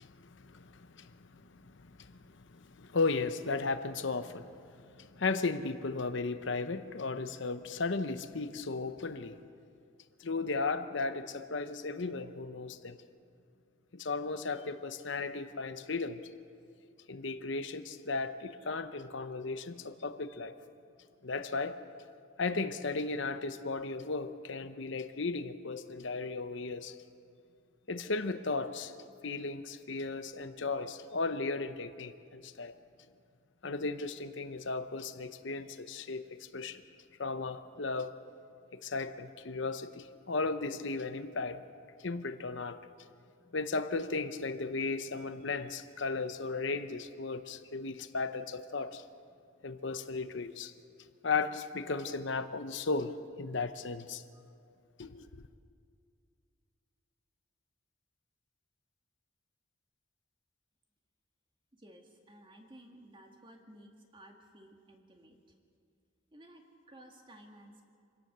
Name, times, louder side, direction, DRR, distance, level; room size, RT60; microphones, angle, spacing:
voice 1, 0.0-4.5 4.8-9.4 10.2-13.0 13.9-16.2 17.1-20.6 21.2-21.8 22.4-27.0 27.9-28.9 29.2-32.8 33.6-36.8 37.2-38.1 38.7-41.6 42.0-42.8 43.5-49.0 49.6-50.7 51.2-54.2 55.0-55.4, left 3 dB, 60° left, 10 dB, 0.8 m, -35 dB
voice 2, 61.7-65.6 66.3-67.9, right 1 dB, 25° right, 2 dB, 2.0 m, -56 dB
26.0 x 17.0 x 6.7 m, 2.3 s
head